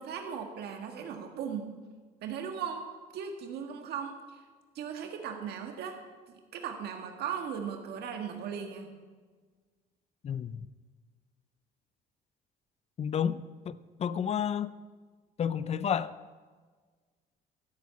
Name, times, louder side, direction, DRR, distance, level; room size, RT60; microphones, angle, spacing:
voice 1, 0.0-1.7 2.2-2.8 3.1-4.2 4.7-6.0 6.5-8.9, right 7 dB, 75° right, 1.6 m, -37 dB
voice 2, 10.2-10.7 13.0-14.7 15.4-16.1, left 8 dB, 40° left, 0.6 m, -31 dB
14.0 x 7.2 x 8.3 m
cardioid pair, 110°, 17 cm